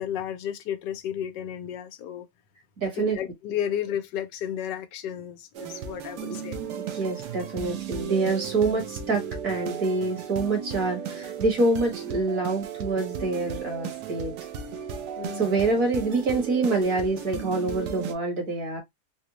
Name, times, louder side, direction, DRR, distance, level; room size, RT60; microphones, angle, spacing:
voice 1, 0.0-2.3 2.8-6.6 15.2-15.6, left 9 dB, 90° left, 1.3 m, -33 dB
voice 2, 2.8-3.2 6.2-6.4 6.7-14.3 15.4-18.8, right 3 dB, 55° right, 1.8 m, -26 dB
sound 1, 5.5-18.1, right 7 dB, 75° right, 1.2 m, -35 dB
4.2 x 2.1 x 2.9 m
omnidirectional pair, 1.8 m